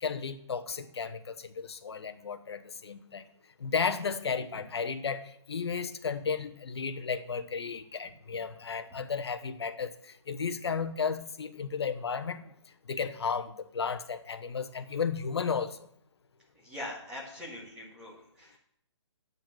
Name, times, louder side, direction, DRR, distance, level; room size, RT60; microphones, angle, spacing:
voice 1, 0.0-3.2 3.6-9.9 10.3-12.4 12.9-15.8, left 5 dB, 60° left, 9 dB, 1.0 m, -33 dB
voice 2, 16.6-18.6, left 1 dB, 5° right, -7 dB, 1.7 m, -42 dB
8.8 x 5.6 x 7.5 m, 0.70 s
hypercardioid pair, 175°, 15 cm